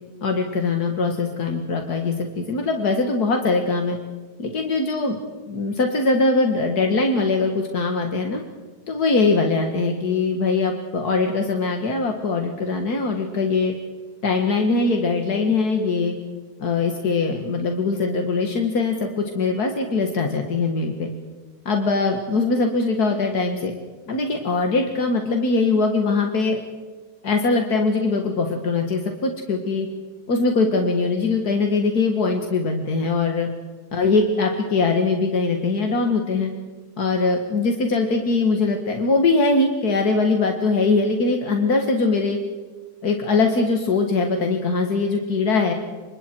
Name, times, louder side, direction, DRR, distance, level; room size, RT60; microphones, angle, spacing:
voice 1, 0.2-4.0 4.4-5.2 5.5-8.4 8.9-13.7 14.2-16.2 16.6-19.1 19.3-21.1 21.7-23.7 24.1-26.6 27.2-29.9 30.3-33.5 33.9-36.5 37.0-42.4 43.0-45.7, left 3 dB, 80° left, 3 dB, 2.4 m, -21 dB
29.5 x 25.5 x 4.7 m, 1.4 s
omnidirectional pair, 1.6 m